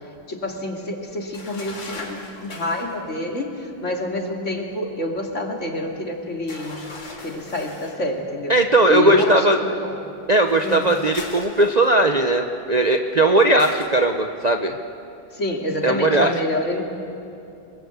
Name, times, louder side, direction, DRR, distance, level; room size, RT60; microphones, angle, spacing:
voice 1, 0.3-6.8 7.2-8.6 8.9-10.0 10.6-10.9 15.3-16.8, left 1 dB, 35° left, 1 dB, 2.8 m, -27 dB
sound 1, 1.3-2.9 6.5-8.0 10.4-12.1 13.6-14.0, left 2 dB, 70° left, 3.5 m, -39 dB
voice 2, 8.5-9.6 10.3-14.8 15.8-16.3, right 2 dB, 65° right, 4 dB, 0.4 m, -18 dB
28.5 x 20.5 x 8.2 m, 2.7 s
omnidirectional pair, 2.2 m